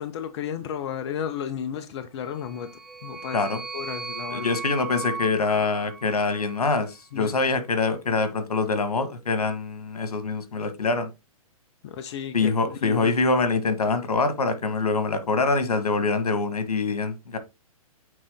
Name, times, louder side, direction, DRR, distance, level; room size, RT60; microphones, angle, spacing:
voice 1, 0.0-3.4 3.7-4.5 7.1-7.3 11.8-13.1, left 8 dB, 45° left, 0.7 m, -33 dB
sound 1, 2.3-6.7, right 5 dB, 5° right, 0.6 m, -37 dB
voice 2, 4.3-11.1 12.3-17.4, left 3 dB, 85° left, 1.7 m, -24 dB
8.6 x 3.9 x 3.6 m
hypercardioid pair, 135°, 19 cm